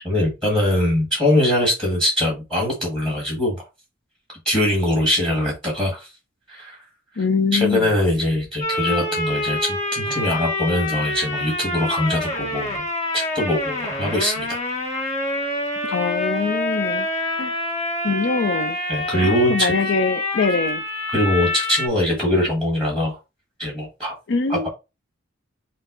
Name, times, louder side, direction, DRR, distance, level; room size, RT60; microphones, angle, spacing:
voice 1, 0.0-3.6 4.4-6.1 6.5-6.8 7.1-7.2 7.5-12.8 13.1-14.6 18.9-19.7 21.1-23.2 23.6-24.1 24.5-24.7, left 1 dB, 5° left, 1.6 m, -22 dB
voice 2, 7.2-7.9 15.9-17.1 17.4-17.5 18.0-18.8 19.2-20.8 24.3-24.7, left 4 dB, 65° left, 0.5 m, -23 dB
sound 1, 8.6-21.9, left 2 dB, 35° left, 1.2 m, -26 dB
5.4 x 2.0 x 3.8 m
head